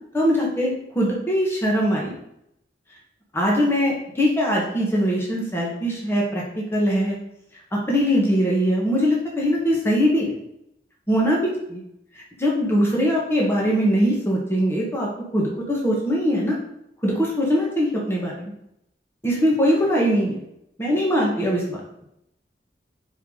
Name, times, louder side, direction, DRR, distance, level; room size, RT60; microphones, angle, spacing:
voice 1, 0.1-2.1 3.3-7.2 7.7-10.3 11.1-11.8 12.1-16.6 17.0-18.5 19.2-20.4 20.8-21.8, equal, 15° left, -3 dB, 1.1 m, -22 dB
5.7 x 4.6 x 3.7 m, 0.79 s
head